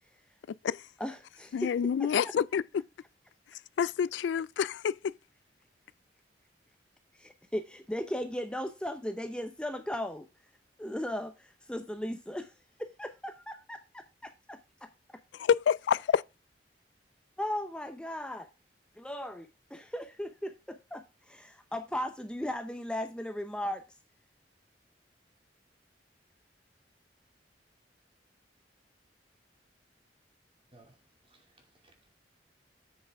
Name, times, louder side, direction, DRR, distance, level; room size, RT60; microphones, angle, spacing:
voice 1, 1.0-1.7 2.0-2.3 7.2-10.3 10.8-12.5 12.8-14.6 17.4-18.5 19.0-23.8, left 1 dB, 5° left, 0.6 m, -37 dB
voice 2, 1.5-2.8 3.8-5.1 15.4-16.2, left 7 dB, 80° left, 0.3 m, -28 dB
voice 3, 31.3-32.1, right 2 dB, 30° right, 2.5 m, -61 dB
8.0 x 6.6 x 3.5 m
head